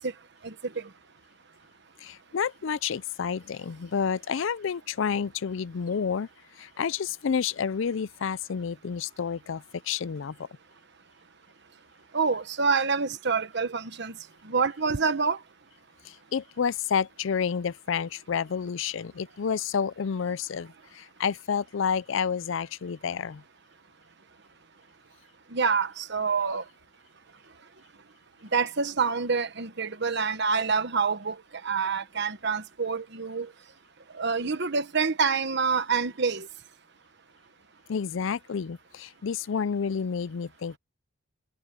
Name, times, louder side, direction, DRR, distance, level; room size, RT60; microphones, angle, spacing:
voice 1, 0.4-0.9 12.1-14.2 14.4-15.4 25.5-26.6 28.5-31.4 31.6-33.5 34.1-36.5, right 5 dB, 55° right, 1.2 m, -27 dB
voice 2, 2.0-6.3 6.6-10.5 16.0-23.4 37.9-40.8, left 6 dB, 60° left, 0.4 m, -30 dB
head